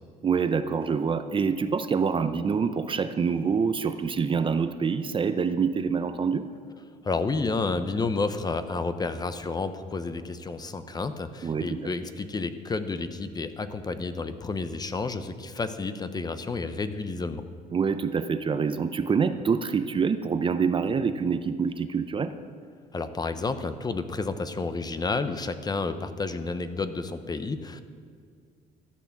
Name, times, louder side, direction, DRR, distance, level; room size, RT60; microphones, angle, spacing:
voice 1, 0.2-6.4 11.4-11.9 17.7-22.3, right 5 dB, 30° right, 10 dB, 0.6 m, -26 dB
voice 2, 7.0-17.4 22.9-27.8, left 3 dB, 25° left, 10 dB, 0.8 m, -30 dB
14.0 x 8.7 x 7.2 m, 2.1 s
cardioid pair, 110°, 17 cm